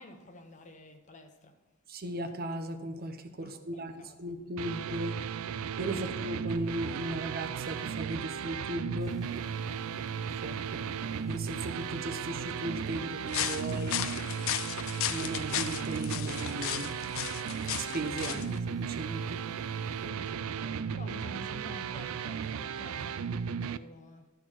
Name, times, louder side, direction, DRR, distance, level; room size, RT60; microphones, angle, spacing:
voice 1, 0.0-1.6 3.4-4.2 5.9-6.1 9.7-10.1 18.2-18.5 20.0-24.3, left 1 dB, 35° left, 0.9 m, -50 dB
voice 2, 1.9-5.2 5.8-9.1 10.4-10.8 11.3-14.0 15.1-16.9 17.7-18.4 18.9-19.4, right 1 dB, 45° right, 0.8 m, -37 dB
sound 1, 4.6-23.8, right 7 dB, 85° right, 0.4 m, -35 dB
sound 2, 9.0-20.7, left 5 dB, ahead, 0.8 m, -54 dB
sound 3, 13.3-18.6, left 11 dB, 70° left, 0.5 m, -35 dB
12.5 x 4.5 x 6.0 m
head